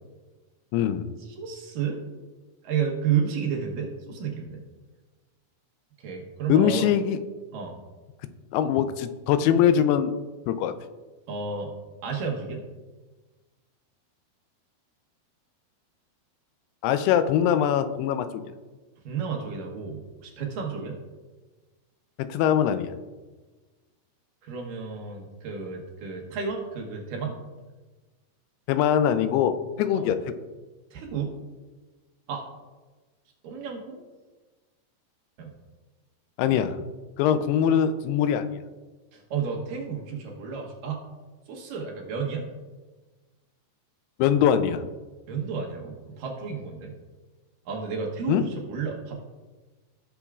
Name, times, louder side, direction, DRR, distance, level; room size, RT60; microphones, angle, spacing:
voice 1, 0.7-1.1 6.5-7.2 8.5-10.1 10.5-10.7 16.8-18.4 22.2-22.9 28.7-30.3 36.4-36.8 37.2-38.5 44.2-44.8 48.3-48.4, left 9 dB, 90° left, 11 dB, 2.6 m, -22 dB
voice 2, 1.3-2.0 2.6-4.6 6.0-6.9 7.5-7.8 11.3-11.7 12.0-12.6 19.1-21.0 24.4-27.3 29.9-30.1 30.9-31.3 32.3-32.4 33.4-34.0 35.4-35.5 39.1-41.0 41.5-42.5 45.3-46.9 47.7-49.2, right 6 dB, 70° right, 1 dB, 2.4 m, -31 dB
16.5 x 6.9 x 2.4 m, 1.3 s
omnidirectional pair, 4.6 m